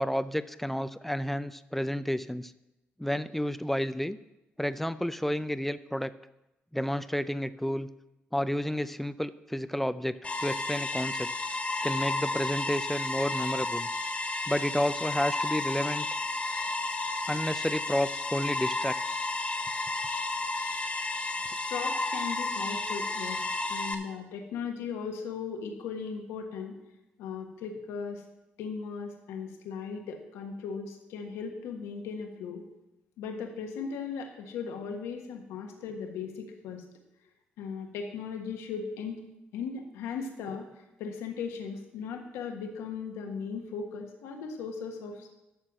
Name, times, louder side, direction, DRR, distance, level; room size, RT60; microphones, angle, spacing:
voice 1, 0.0-2.5 3.0-4.2 4.6-6.1 6.7-7.9 8.3-11.3 11.8-13.9 14.5-16.1 17.3-19.0, equal, 5° left, 13 dB, 0.5 m, -31 dB
sound 1, 10.2-23.9, left 3 dB, 30° left, 1.6 m, -32 dB
voice 2, 21.7-23.4 23.7-26.7 27.2-28.2 28.6-32.6 33.2-36.8 37.6-39.2 39.5-45.3, left 6 dB, 85° left, 3 dB, 1.4 m, -37 dB
12.0 x 4.6 x 7.5 m, 0.95 s
supercardioid pair, 65°, 5 cm